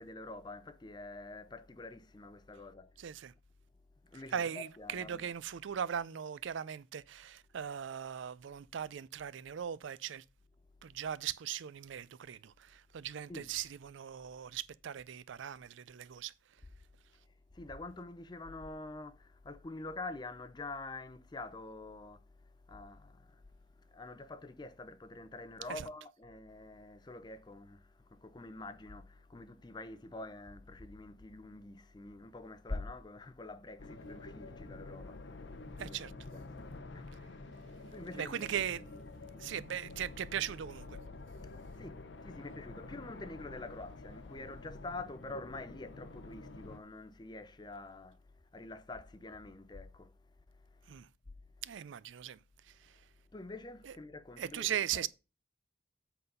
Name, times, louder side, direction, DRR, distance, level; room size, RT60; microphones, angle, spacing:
voice 1, 0.0-3.1 4.0-5.2 13.3-13.5 17.5-23.4 23.8-36.0 36.3-37.3 37.9-38.5 41.4-50.1 50.5-51.0 53.3-55.1, left 2 dB, 20° left, 0.5 m, -47 dB
voice 2, 3.0-3.3 4.1-10.2 10.8-16.3 25.7-25.9 35.8-36.1 38.1-38.8 39.4-41.0 50.9-51.1 51.6-52.4 52.7-53.0 53.8-53.9 54.4-55.1, right 9 dB, 70° right, 0.4 m, -39 dB
sound 1, 33.8-46.8, left 3 dB, 60° left, 0.7 m, -48 dB
7.9 x 4.0 x 5.3 m
head